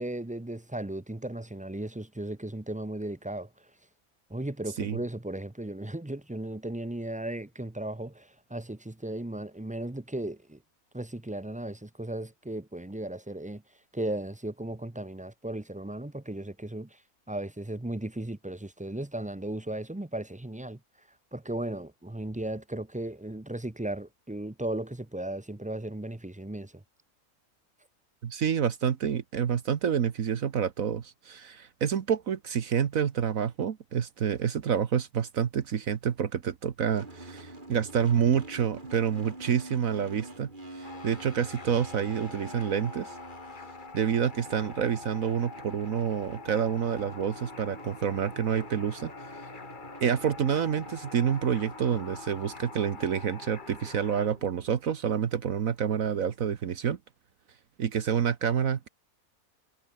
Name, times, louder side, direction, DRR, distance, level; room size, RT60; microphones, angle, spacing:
voice 1, 0.0-3.7 4.3-10.6 10.9-13.6 13.9-17.0 17.3-20.8 21.3-26.8, right 1 dB, 10° right, 0.6 m, -36 dB
voice 2, 28.2-40.5 40.8-43.1 43.9-49.1 50.0-57.0 57.8-58.9, right 8 dB, 70° right, 1.5 m, -28 dB
sound 1, 36.9-54.8, right 1 dB, 35° right, 4.8 m, -47 dB
sound 2, 40.8-54.3, left 5 dB, 35° left, 1.4 m, -46 dB
omnidirectional pair, 1.5 m